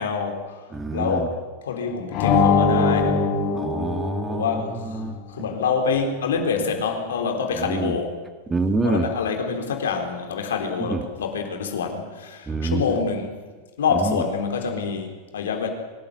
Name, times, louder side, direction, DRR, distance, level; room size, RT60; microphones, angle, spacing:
voice 1, 0.0-0.7 0.9-3.3 4.3-5.1 5.3-8.2 8.8-13.4 13.8-15.7, left 5 dB, 85° left, 3.9 m, -26 dB
voice 2, 0.7-1.3 3.5-5.2 7.5-8.0 8.5-9.1 10.8-11.0 12.5-13.0 14.0-14.2, right 3 dB, 15° right, 2.0 m, -26 dB
sound 1, 2.1-4.8, left 4 dB, 50° left, 7.2 m, -21 dB
23.5 x 13.0 x 9.8 m
hypercardioid pair, 105°, 0 cm